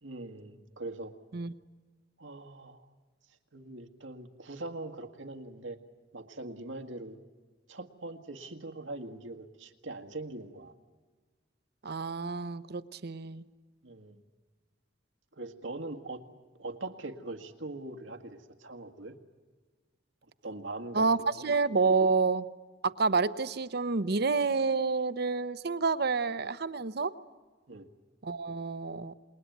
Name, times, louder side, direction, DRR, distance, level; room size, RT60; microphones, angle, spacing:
voice 1, 0.0-1.1 2.2-2.9 3.5-5.8 6.1-7.2 7.7-10.7 13.8-14.2 15.3-16.2 16.6-19.2 20.4-21.5 27.7-27.9, right 2 dB, 90° right, 5 dB, 1.8 m, -42 dB
voice 2, 11.8-13.5 20.9-22.4 22.8-27.1 28.2-29.1, right 4 dB, 60° right, 13 dB, 0.8 m, -29 dB
27.5 x 21.0 x 9.3 m, 1.4 s
head